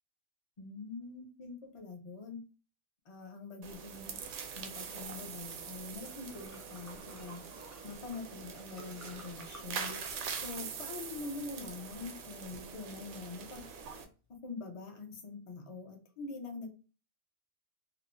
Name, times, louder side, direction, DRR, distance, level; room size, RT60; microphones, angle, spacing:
voice 1, 0.6-2.4 3.1-4.2 4.6-7.4 7.8-10.0 10.3-13.6 14.3-16.8, left 4 dB, 55° left, 2 dB, 0.3 m, -44 dB
sound 1, 3.6-14.0, right 6 dB, 75° right, 1.0 m, -43 dB
Liquid, 4.9-14.3, right 1 dB, 20° right, 0.4 m, -57 dB
3.2 x 2.0 x 2.5 m, 0.34 s
omnidirectional pair, 1.5 m